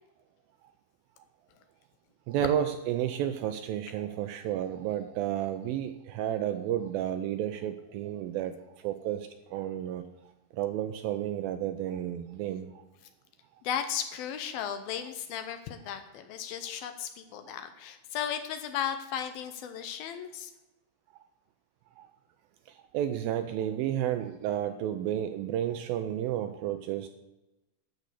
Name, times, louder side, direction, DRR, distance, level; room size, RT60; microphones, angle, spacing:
voice 1, 2.3-8.5 8.8-10.1 10.5-12.7 22.0-22.1 22.9-27.1, right 11 dB, 85° right, 9 dB, 2.1 m, -31 dB
voice 2, 13.6-20.5, left 9 dB, 75° left, 8 dB, 2.4 m, -35 dB
12.5 x 5.2 x 8.2 m, 0.99 s
omnidirectional pair, 4.7 m